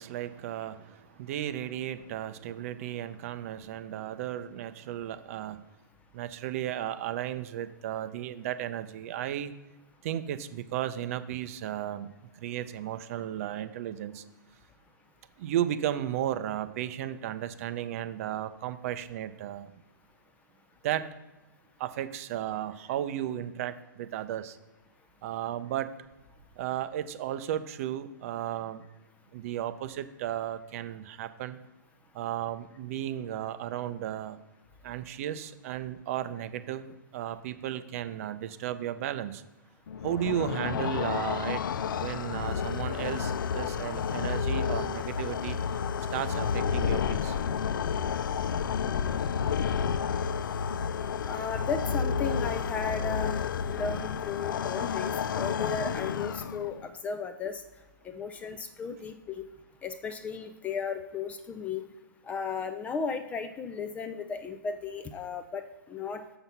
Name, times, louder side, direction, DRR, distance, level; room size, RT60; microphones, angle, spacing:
voice 1, 0.0-5.6 6.1-9.5 10.0-14.2 15.4-19.7 20.8-21.1 21.8-24.6 25.2-25.9 26.6-28.8 29.3-31.6 32.1-34.4 34.8-39.4 40.0-41.7 42.0-45.6 46.1-47.4, right 11 dB, 40° right, 12 dB, 0.6 m, -34 dB
sound 1, 39.9-56.8, left 7 dB, 70° left, 0.4 m, -30 dB
voice 2, 51.3-57.6 58.0-59.4 59.8-61.8 62.3-65.6 65.9-66.2, left 5 dB, 15° left, 9 dB, 0.4 m, -35 dB
6.9 x 5.9 x 5.5 m, 1.1 s
hypercardioid pair, 140°, 11 cm